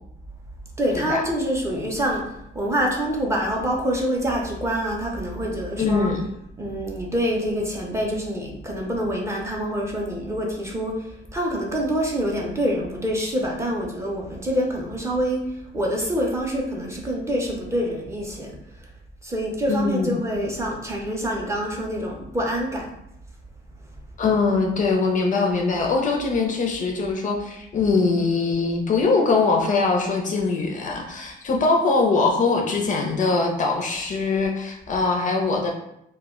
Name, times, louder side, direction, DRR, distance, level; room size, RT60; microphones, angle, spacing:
voice 1, 0.8-6.1 6.6-18.9 19.2-22.9, equal, 15° right, -1 dB, 0.5 m, -26 dB
voice 2, 5.8-6.2 19.7-20.2 24.2-35.7, left 4 dB, 40° left, 1 dB, 0.4 m, -22 dB
2.1 x 2.1 x 3.5 m, 0.79 s
cardioid pair, 120°, 20 cm